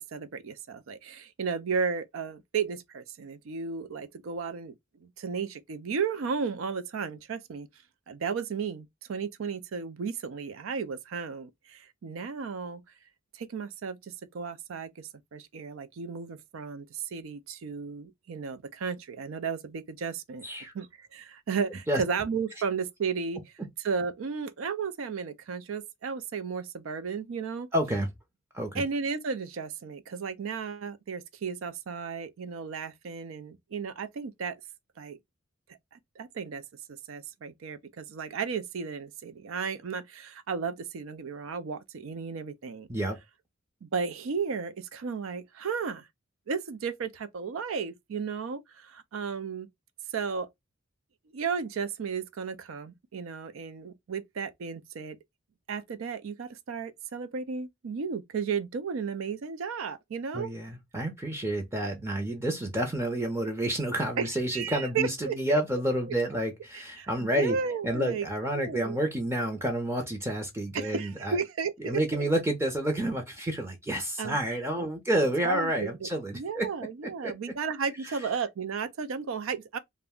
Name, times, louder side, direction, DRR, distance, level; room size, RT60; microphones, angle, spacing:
voice 1, 0.1-4.7 5.0-7.7 8.1-12.8 13.3-20.4 20.7-23.4 23.8-27.7 28.7-34.6 35.0-35.2 36.2-36.6 36.9-42.9 43.8-46.1 46.5-49.7 50.1-50.5 51.3-55.2 55.7-60.5 64.2-65.6 67.0-68.3 68.5-69.0 70.7-72.2 74.2-74.4 74.8-74.9 75.2-76.1 76.3-79.8, right 5 dB, 80° right, 0.4 m, -34 dB
voice 2, 20.4-20.7 21.9-22.0 27.7-28.1 28.5-28.8 42.9-43.2 60.3-67.6 67.8-71.4 71.8-76.7 77.2-77.3 78.0-78.2, right 1 dB, 15° right, 0.6 m, -29 dB
2.4 x 2.1 x 3.5 m
head